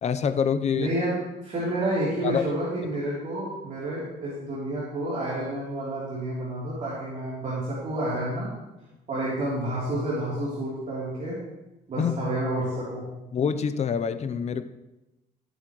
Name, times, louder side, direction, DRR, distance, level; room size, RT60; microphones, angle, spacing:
voice 1, 0.0-0.9 2.2-2.5 12.0-12.3 13.3-14.6, left 7 dB, 40° left, 11 dB, 0.7 m, -26 dB
voice 2, 0.7-1.2 1.4-8.5 9.1-11.4 11.9-13.0, right 1 dB, 45° right, -8 dB, 3.5 m, -29 dB
18.5 x 8.3 x 3.2 m, 1.0 s
cardioid pair, 110°, 17 cm